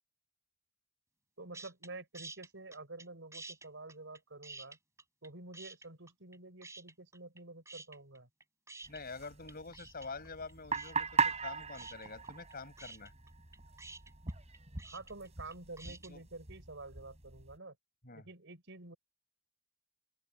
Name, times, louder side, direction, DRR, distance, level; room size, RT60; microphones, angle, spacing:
voice 1, 1.4-4.8 5.2-8.3 14.8-17.8 18.1-19.0, right 2 dB, 60° right, 6.3 m, -49 dB
sound 1, 1.5-1.9 2.1-3.1 3.3-5.3 5.5-6.4 6.6-7.4 7.7-16.1, right 3 dB, 15° right, 4.5 m, -50 dB
sound 2, 8.8-17.6, right 5 dB, 30° right, 3.4 m, -39 dB
voice 2, 8.9-13.1 15.8-16.2 18.0-18.3, left 4 dB, 45° left, 6.8 m, -46 dB
open air
head